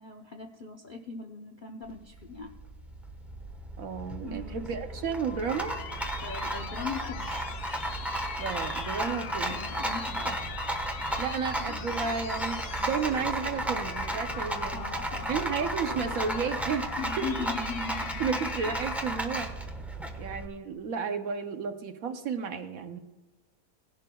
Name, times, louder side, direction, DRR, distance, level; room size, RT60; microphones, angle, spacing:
voice 1, 0.0-2.5 4.2-4.7 6.2-7.4 9.0-10.4 14.7-15.3 17.0-18.3, left 4 dB, 50° left, 2 dB, 0.6 m, -39 dB
Rattle, 1.9-20.5, right 1 dB, ahead, 0.8 m, -34 dB
voice 2, 3.8-5.8 8.4-9.6 10.1-10.3 11.2-14.8 15.3-16.9 17.2-17.3 18.2-19.5 20.2-23.0, right 6 dB, 60° right, 7 dB, 1.1 m, -32 dB
sound 1, 4.7-19.4, left 9 dB, 70° left, 1.0 m, -42 dB
18.0 x 11.0 x 2.3 m, 1.2 s
omnidirectional pair, 1.8 m